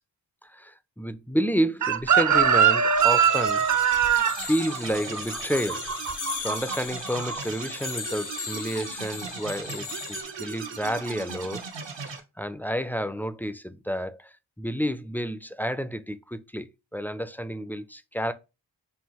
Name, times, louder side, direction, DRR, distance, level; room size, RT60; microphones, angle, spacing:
voice 1, 0.4-3.7 4.4-5.9 6.4-11.7 12.0-18.3, equal, 5° left, 0.3 m, -30 dB
Chicken rooster, 1.8-6.8 7.0-7.4, right 7 dB, 45° right, 0.5 m, -22 dB
sound 1, 2.9-12.2, right 5 dB, 80° right, 0.9 m, -38 dB
sound 2, 3.0-10.2, left 6 dB, 45° left, 0.6 m, -38 dB
5.5 x 2.5 x 2.9 m
wide cardioid pair, 50°, 44 cm